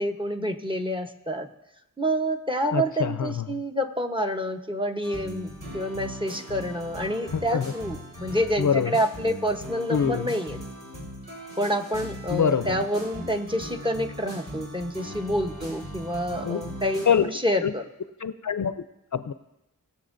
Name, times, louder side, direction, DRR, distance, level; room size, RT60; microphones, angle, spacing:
voice 1, 0.0-1.5 2.0-10.6 11.6-17.8, equal, 15° right, 6 dB, 1.0 m, -28 dB
voice 2, 2.7-3.6 7.5-7.7 8.6-8.9 9.9-10.3 12.3-12.8 16.4-16.6 17.1-17.3 17.6-17.7 18.2-18.8 19.1-19.3, left 7 dB, 55° left, 12 dB, 0.5 m, -24 dB
sound 1, 5.0-17.1, equal, 50° right, 4.4 m, -39 dB
20.5 x 7.3 x 2.6 m, 0.90 s
cardioid pair, 40°, 36 cm